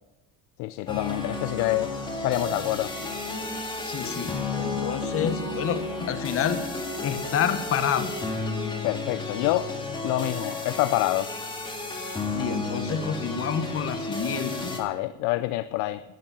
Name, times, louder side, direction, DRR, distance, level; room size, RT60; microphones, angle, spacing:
voice 1, 0.6-1.9 2.2-2.9 8.8-9.7 10.0-11.3 14.7-16.0, left 17 dB, 65° left, 14 dB, 0.5 m, -27 dB
sound 1, 0.9-14.8, left 2 dB, 15° left, 2.0 m, -32 dB
voice 2, 3.5-6.6 7.0-8.1 12.3-14.7, left 8 dB, 40° left, 10 dB, 1.2 m, -29 dB
12.0 x 9.9 x 5.5 m, 1.1 s
supercardioid pair, 115°, 34 cm